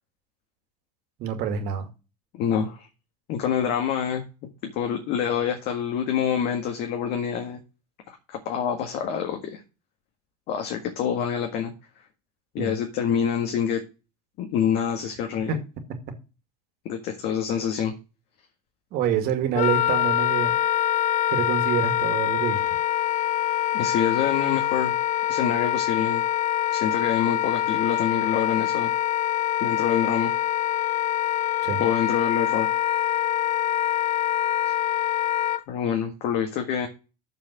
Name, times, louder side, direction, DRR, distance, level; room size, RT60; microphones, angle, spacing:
voice 1, 1.2-1.9 12.6-12.8 15.5-15.6 18.9-20.6 21.3-22.6 31.6-31.8, right 7 dB, 50° right, 2.2 m, -26 dB
voice 2, 2.3-2.9 3.3-4.2 4.6-7.6 8.1-9.6 10.5-11.7 12.5-13.8 14.4-15.5 16.9-17.9 23.7-24.9 25.3-26.2 26.7-28.9 29.6-30.3 31.8-32.7 34.6-34.7 35.7-36.9, left 8 dB, 55° left, 1.8 m, -26 dB
Wind instrument woodwind instrument, 19.5-35.6, left 13 dB, 40° left, 0.8 m, -24 dB
7.0 x 5.7 x 7.4 m
hypercardioid pair, 75°, 20 cm